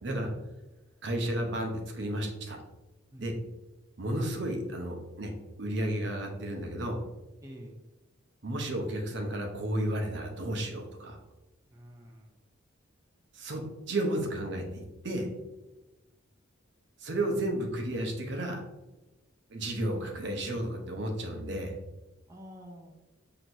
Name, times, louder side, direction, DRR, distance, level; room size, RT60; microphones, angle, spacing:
voice 1, 1.0-2.6 3.2-3.4 4.0-5.3 5.6-7.0 8.4-11.2 13.3-13.6 13.9-15.3 17.0-18.6 19.5-21.7, right 1 dB, 60° right, 2 dB, 0.7 m, -32 dB
voice 2, 7.4-7.8 11.7-12.3 22.3-22.9, equal, 15° right, 0 dB, 0.4 m, -48 dB
6.0 x 2.9 x 2.6 m, 1.1 s
head